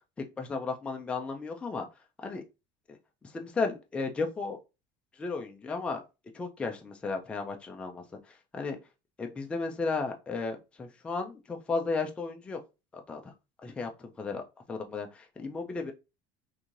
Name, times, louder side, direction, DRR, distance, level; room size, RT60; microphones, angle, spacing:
voice 1, 0.4-1.8 2.2-2.4 3.3-4.6 5.2-6.0 6.3-8.0 8.5-8.8 9.2-12.6 13.1-13.2 13.6-15.1 15.4-15.9, left 4 dB, 10° left, 3 dB, 0.3 m, -34 dB
3.0 x 2.7 x 3.7 m, 0.27 s
cardioid pair, 175°, 12 cm